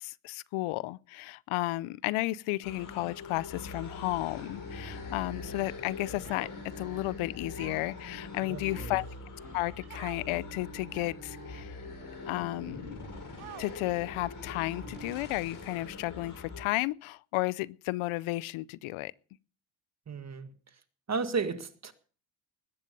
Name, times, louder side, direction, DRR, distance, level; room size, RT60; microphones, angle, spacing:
voice 1, 0.0-6.5 6.8-9.0 9.5-11.8 12.3-13.0 13.6-19.1, left 19 dB, 75° left, 0.6 m, -33 dB
sound 1, 2.6-16.6, left 3 dB, 40° left, 5.6 m, -43 dB
sound 2, 4.1-15.9, right 4 dB, 15° right, 4.3 m, -53 dB
Human voice, 6.2-6.8 7.6-8.0 8.6-9.2 9.9-10.2 10.9-11.3 12.0-12.1 13.4-14.0, right 18 dB, 75° right, 1.0 m, -49 dB
voice 2, 8.4-9.0 20.1-20.5 21.1-21.9, right 5 dB, 30° right, 1.9 m, -34 dB
20.5 x 8.9 x 5.3 m
cardioid pair, 90°, 50 cm